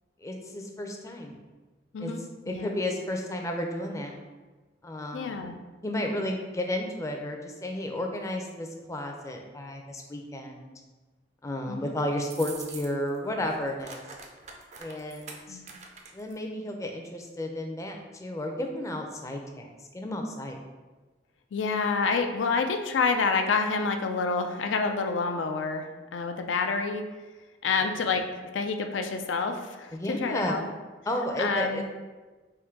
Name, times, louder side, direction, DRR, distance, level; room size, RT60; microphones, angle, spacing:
voice 1, 0.2-1.4 2.0-2.1 2.5-4.2 4.8-5.5 5.8-10.7 11.4-14.0 14.8-15.6 16.1-20.6 29.9-30.6 31.1-31.8, left 1 dB, 15° left, 2 dB, 0.4 m, -32 dB
voice 2, 5.1-5.6 11.7-11.9 15.5-15.7 21.5-27.1 27.6-28.2 28.5-30.7 31.4-31.8, left 4 dB, 85° left, 6 dB, 0.4 m, -28 dB
sound 1, 12.2-13.2 13.4-16.4, right 4 dB, 40° right, 0.4 m, -44 dB
3.7 x 2.6 x 4.5 m, 1.3 s
head